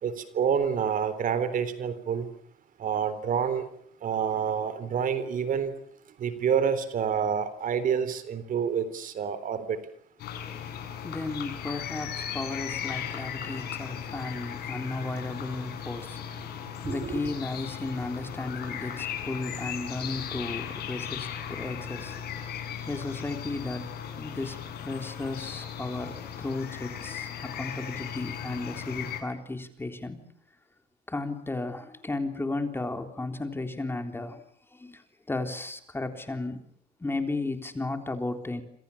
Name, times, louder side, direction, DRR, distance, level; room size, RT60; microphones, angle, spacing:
voice 1, 0.0-2.3 2.8-3.7 4.0-5.7 6.2-9.8 16.8-17.1, right 7 dB, 55° right, 13 dB, 3.7 m, -28 dB
sound 1, 10.2-29.2, left 9 dB, 70° left, 8.0 m, -37 dB
voice 2, 10.4-22.4 22.9-23.9 24.2-24.6 24.8-30.2 31.1-34.4 34.7-35.0 35.3-36.6 37.0-38.6, left 2 dB, 15° left, 6 dB, 3.7 m, -34 dB
27.5 x 27.0 x 7.2 m, 0.65 s
cardioid pair, 110°, 17 cm